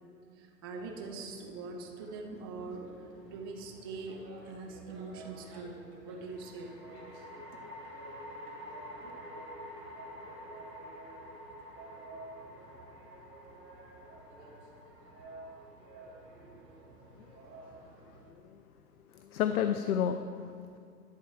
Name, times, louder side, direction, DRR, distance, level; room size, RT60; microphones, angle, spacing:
voice 1, 0.4-6.8 9.0-9.1, right 3 dB, 15° right, 2 dB, 0.4 m, -43 dB
sound 1, 0.7-18.3, right 2 dB, 75° right, 2.1 m, -53 dB
sound 2, 3.2-3.9 6.3-17.6, equal, 15° left, 2.6 m, -49 dB
voice 2, 18.0-18.6 19.1-20.8, left 8 dB, 60° left, 9 dB, 0.6 m, -33 dB
11.0 x 4.5 x 7.2 m, 2.3 s
hypercardioid pair, 120°, 49 cm